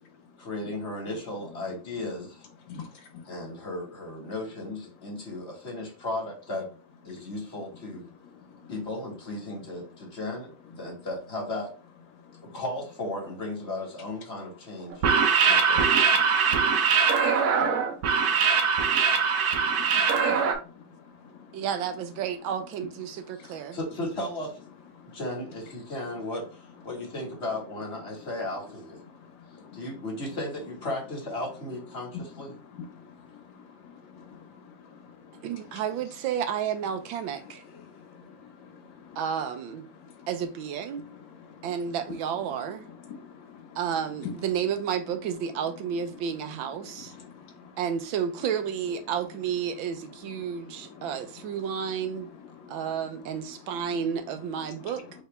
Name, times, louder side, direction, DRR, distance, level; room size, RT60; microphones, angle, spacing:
voice 1, 0.4-2.4 3.3-6.7 7.0-8.1 8.7-11.7 12.4-15.1 15.4-16.1 23.3-24.6 25.1-29.0 29.7-32.5, left 1 dB, 35° left, 1.8 m, -35 dB
voice 2, 2.8-3.2 16.4-16.8 17.6-17.9 18.2-18.5 19.8-20.2 20.7-20.8 29.5-29.8 33.0-33.1 33.6-34.4 35.0-35.1 37.8-39.2 40.0-40.3 41.5-41.6 43.1-43.8 44.2-44.3 47.1-47.7 51.0-51.1 52.6-52.8, left 7 dB, 75° left, 1.6 m, -46 dB
sound 1, 14.9-20.5, right 6 dB, 60° right, 1.2 m, -22 dB
voice 3, 21.5-23.8 35.4-37.6 39.2-39.9 40.3-41.1 41.6-42.9 43.8-47.1 47.8-52.3 52.7-55.0, right 8 dB, 90° right, 1.4 m, -31 dB
4.8 x 3.3 x 3.3 m
omnidirectional pair, 2.1 m